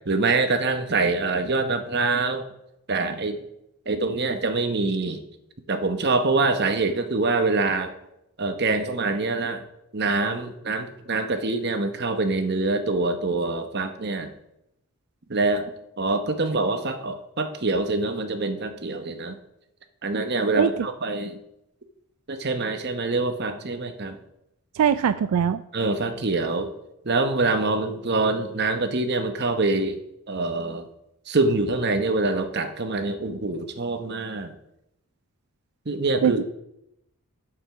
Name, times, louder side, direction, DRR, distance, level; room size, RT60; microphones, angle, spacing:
voice 1, 0.0-2.4 2.9-3.4 3.9-5.2 5.7-7.9 8.4-9.6 9.9-14.3 15.3-15.7 16.0-19.4 20.0-21.4 22.3-24.2 25.7-26.7 27.0-30.0 30.3-30.9 31.3-34.5 35.9-36.4, right 3 dB, 50° right, 7 dB, 0.9 m, -25 dB
voice 2, 24.7-25.6 36.2-36.4, right 8 dB, 85° right, 13 dB, 0.3 m, -21 dB
7.4 x 6.8 x 6.0 m, 0.83 s
head